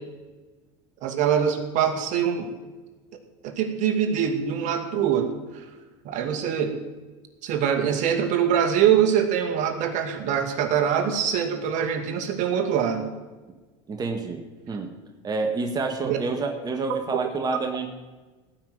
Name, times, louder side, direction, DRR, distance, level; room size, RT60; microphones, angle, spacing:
voice 1, 1.0-2.5 3.4-5.6 6.0-6.8 7.4-13.1 16.0-16.2 17.1-17.3, right 8 dB, 55° right, 5 dB, 2.3 m, -24 dB
voice 2, 13.9-14.9 15.2-17.9, right 3 dB, 25° right, 4 dB, 1.7 m, -28 dB
18.0 x 6.0 x 9.5 m, 1.2 s
supercardioid pair, 105°, 16 cm